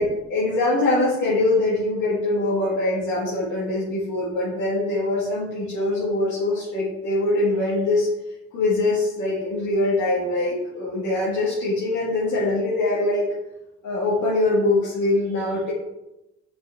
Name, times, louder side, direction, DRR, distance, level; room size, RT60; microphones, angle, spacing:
voice 1, 0.0-8.1 8.5-13.3 13.8-15.7, left 2 dB, 80° left, -7 dB, 2.1 m, -23 dB
6.5 x 6.3 x 3.8 m, 0.96 s
cardioid pair, 90°, 30 cm